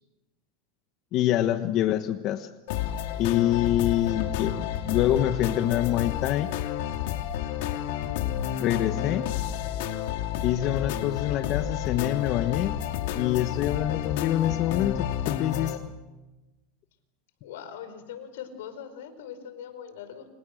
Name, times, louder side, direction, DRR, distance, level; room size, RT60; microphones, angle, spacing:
voice 1, 1.1-2.5 3.2-6.5 8.6-9.3 10.4-12.8 13.1-15.8, left 12 dB, 45° left, 9 dB, 1.2 m, -26 dB
sound 1, 2.7-15.8, left 10 dB, 70° left, 2.9 m, -30 dB
voice 2, 17.4-20.3, left 8 dB, 85° left, 10 dB, 4.7 m, -41 dB
29.5 x 27.5 x 6.5 m, 1.1 s
supercardioid pair, 140°, 0 cm